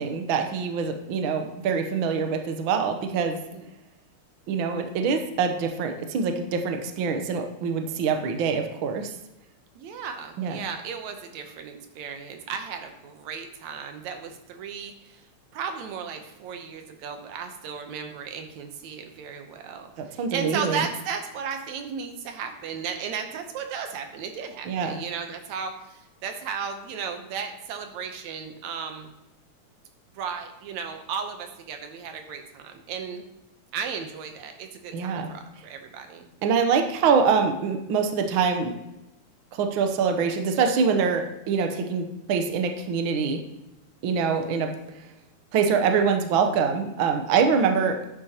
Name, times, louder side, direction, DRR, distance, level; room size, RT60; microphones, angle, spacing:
voice 1, 0.0-3.4 4.5-9.1 10.4-10.6 20.0-20.8 24.7-25.0 34.9-35.3 36.4-38.7 39.5-43.4 44.0-44.7 45.5-48.0, right 5 dB, 90° right, 5 dB, 1.1 m, -24 dB
voice 2, 9.8-15.3 15.5-29.1 30.2-33.2 33.7-36.3, right 6 dB, 70° right, 6 dB, 2.1 m, -35 dB
11.5 x 8.7 x 2.9 m, 0.91 s
omnidirectional pair, 3.5 m